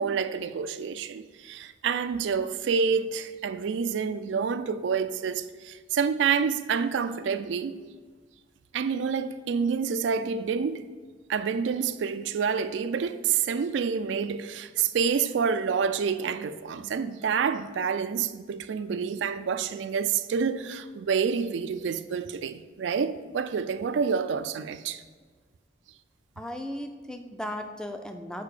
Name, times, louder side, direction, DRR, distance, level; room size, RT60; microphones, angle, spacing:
voice 1, 0.0-7.8 8.7-10.8 11.3-25.0, right 6 dB, 85° right, 0.4 m, -28 dB
voice 2, 26.4-28.4, left 1 dB, 5° left, 0.4 m, -36 dB
6.8 x 4.5 x 4.8 m
head